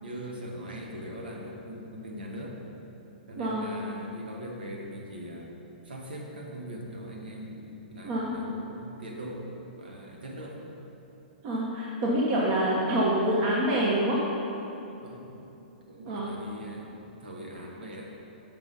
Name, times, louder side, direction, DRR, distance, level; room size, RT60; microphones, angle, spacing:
voice 1, 0.0-2.6 3.3-5.5 5.8-10.6 14.9-15.4 15.9-18.1, equal, 85° right, -1 dB, 1.4 m, -41 dB
voice 2, 3.4-3.7 8.0-8.3 11.4-14.2 16.1-16.3, right 1 dB, 40° right, -4 dB, 1.1 m, -26 dB
5.9 x 5.9 x 5.4 m, 2.9 s
hypercardioid pair, 125°, 5 cm